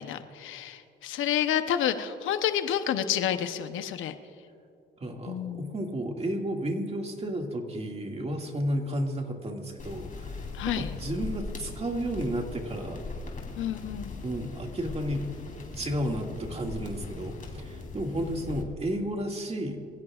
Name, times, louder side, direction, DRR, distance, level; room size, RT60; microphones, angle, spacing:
voice 1, 0.0-4.1 5.3-5.7 10.5-10.9 13.6-14.2, left 10 dB, 80° left, 9 dB, 0.9 m, -29 dB
voice 2, 5.0-10.5 10.8-13.0 14.2-15.3 15.7-19.8, right 1 dB, 30° right, 2 dB, 2.1 m, -32 dB
sound 1, 9.8-18.6, left 3 dB, 40° left, 3.5 m, -40 dB
25.0 x 16.0 x 2.5 m, 2.6 s
cardioid pair, 90°, 20 cm